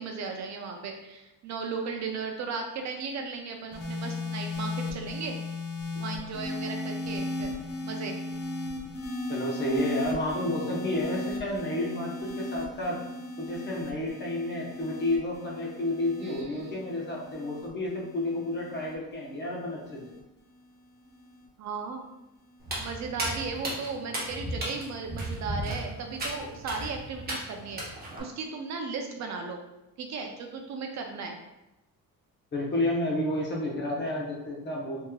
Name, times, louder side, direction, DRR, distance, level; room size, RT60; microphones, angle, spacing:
voice 1, 0.0-5.4 6.0-7.5 7.8-8.2 16.2-16.9 21.6-22.0 22.8-29.6 30.0-31.4, right 4 dB, 55° right, 3 dB, 0.4 m, -36 dB
sound 1, 3.7-20.2 21.1-21.4, left 2 dB, 75° left, 0.9 m, -36 dB
voice 2, 9.3-13.0 13.4-20.0 32.5-35.0, left 1 dB, 30° left, -3 dB, 0.8 m, -31 dB
Walk footsteps, 22.6-28.2, right 1 dB, 25° right, 1.0 m, -35 dB
3.5 x 3.0 x 2.2 m, 0.94 s
cardioid pair, 140°, 35 cm